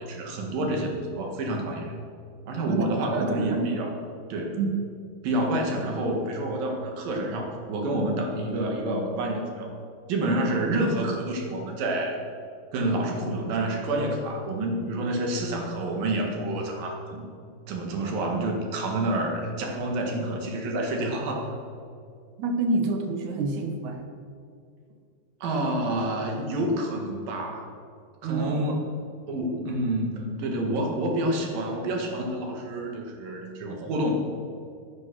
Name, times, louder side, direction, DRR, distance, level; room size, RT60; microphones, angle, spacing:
voice 1, 0.0-1.9 2.5-4.0 4.3-4.6 5.2-9.7 10.1-12.2 12.7-17.3 17.7-21.6 25.4-27.7 28.2-28.9 29.3-34.1, right 1 dB, 90° right, 2 dB, 3.6 m, -28 dB
voice 2, 3.1-3.7 4.6-4.7 22.4-24.1 28.2-28.9, right 3 dB, 65° right, 5 dB, 2.3 m, -28 dB
15.0 x 9.1 x 6.1 m, 2.4 s
omnidirectional pair, 3.9 m